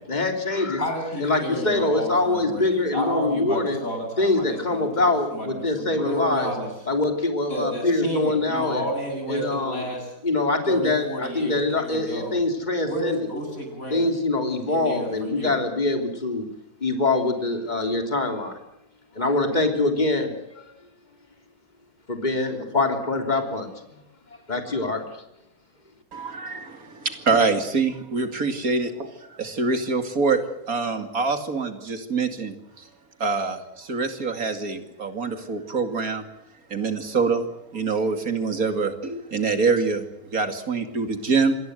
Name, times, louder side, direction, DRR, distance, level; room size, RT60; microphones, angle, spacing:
voice 1, 0.1-0.8 1.2-3.8 4.2-6.5 6.9-8.8 9.3-9.9 10.2-13.2 13.9-16.4 16.8-18.6 19.1-20.6 22.1-23.7 24.5-25.0, left 2 dB, 30° left, 5 dB, 3.5 m, -24 dB
voice 2, 0.8-6.7 7.5-10.1 10.6-12.4 12.8-14.1 14.7-15.6, equal, 65° left, 3 dB, 7.9 m, -31 dB
voice 3, 26.1-30.4 30.7-32.9 33.2-36.3 36.7-37.5 37.7-40.1 40.3-41.6, right 4 dB, 70° right, 8 dB, 2.8 m, -25 dB
26.0 x 20.0 x 7.9 m, 0.82 s
omnidirectional pair, 1.6 m